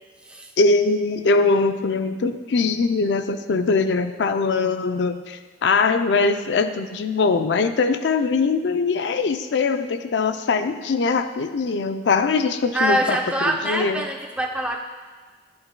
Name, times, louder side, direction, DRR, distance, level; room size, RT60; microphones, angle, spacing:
voice 1, 0.6-13.2 13.6-14.0, left 4 dB, 90° left, 9 dB, 0.4 m, -21 dB
voice 2, 12.7-14.8, right 1 dB, 5° right, 2 dB, 0.5 m, -24 dB
11.0 x 7.9 x 2.2 m, 1.4 s
head